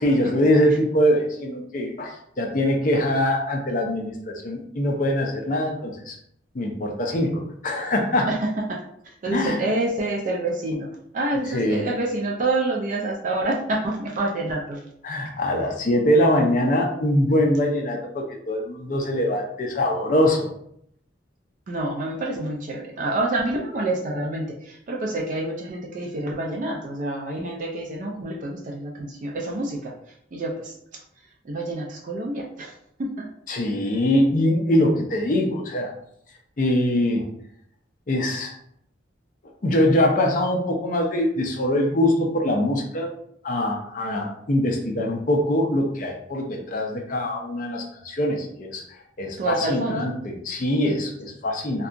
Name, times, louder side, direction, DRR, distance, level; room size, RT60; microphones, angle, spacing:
voice 1, 0.0-6.2 6.5-8.3 9.3-9.6 11.5-11.8 15.0-20.5 33.5-35.9 36.6-37.2 38.1-38.5 39.6-43.1 43.4-48.8 49.2-51.9, left 1 dB, 45° left, 2 dB, 0.5 m, -23 dB
voice 2, 8.3-10.9 11.1-14.8 21.7-29.9 30.3-31.0 31.4-33.3 49.4-50.2, right 2 dB, 45° right, 0 dB, 0.3 m, -27 dB
2.7 x 2.2 x 2.5 m, 0.71 s
head